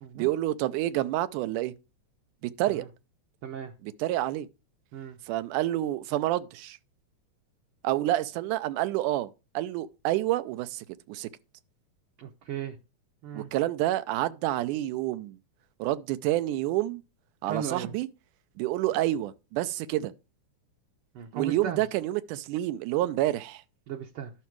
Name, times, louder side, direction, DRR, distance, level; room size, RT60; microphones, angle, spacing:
voice 1, 0.2-1.7 2.4-2.8 3.8-4.5 5.3-6.8 7.8-11.3 13.3-15.4 15.8-17.0 17.4-18.1 18.6-20.1 21.3-23.6, right 15 dB, 85° right, 2.1 m, -28 dB
voice 2, 3.4-3.7 4.9-5.2 12.2-12.8 13.2-13.5 17.5-17.9 21.1-21.8 23.9-24.3, right 8 dB, 65° right, 1.4 m, -36 dB
11.5 x 5.9 x 4.6 m
omnidirectional pair, 3.6 m